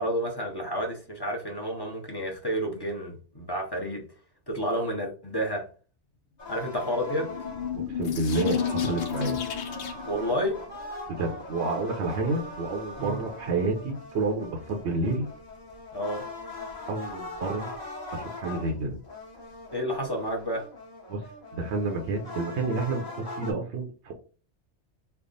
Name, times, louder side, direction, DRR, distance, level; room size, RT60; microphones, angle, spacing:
voice 1, 0.0-4.0 4.5-5.6 6.5-7.3 10.0-10.6 13.0-13.2 15.9-16.2 19.7-20.7, equal, 25° left, 0.8 m, -30 dB
sound 1, 6.4-23.5, left 2 dB, 40° left, 1.1 m, -40 dB
sound 2, 7.2-10.2, left 8 dB, 65° left, 0.8 m, -31 dB
voice 2, 7.8-9.4 11.1-15.3 16.9-17.7 18.1-19.0 21.1-21.2 21.5-24.1, right 3 dB, 75° right, 1.0 m, -29 dB
3.4 x 2.1 x 3.8 m
omnidirectional pair, 1.2 m